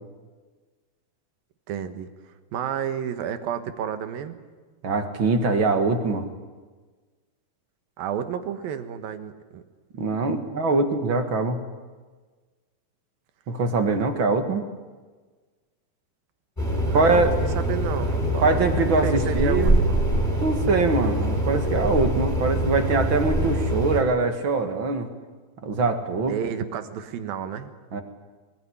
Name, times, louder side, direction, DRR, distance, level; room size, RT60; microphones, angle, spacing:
voice 1, 1.7-4.4 8.0-9.6 14.2-14.6 16.8-17.3 17.6-20.0 26.3-27.7, right 8 dB, 85° right, 10 dB, 3.1 m, -31 dB
voice 2, 4.8-6.2 10.0-11.6 13.5-14.6 16.9-17.3 18.4-19.8 20.4-25.1 25.6-26.3 27.9-28.0, right 3 dB, 45° right, 7 dB, 2.0 m, -23 dB
sound 1, 16.6-24.0, equal, 5° left, 4.8 m, -24 dB
21.5 x 20.5 x 10.0 m, 1.4 s
omnidirectional pair, 4.1 m